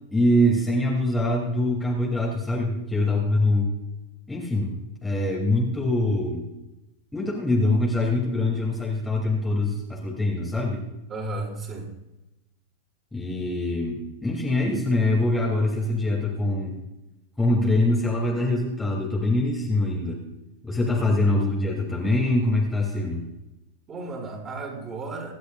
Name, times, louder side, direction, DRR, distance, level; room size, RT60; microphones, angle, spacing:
voice 1, 0.1-3.7 4.3-6.5 7.1-10.8 13.1-16.8 17.4-20.2 20.6-23.2, left 1 dB, 5° left, -3 dB, 3.1 m, -24 dB
voice 2, 11.1-11.9 21.0-21.1 23.9-25.3, right 2 dB, 25° right, -1 dB, 5.9 m, -34 dB
26.0 x 12.0 x 2.5 m, 0.96 s
figure-of-eight pair, 90°, 0 cm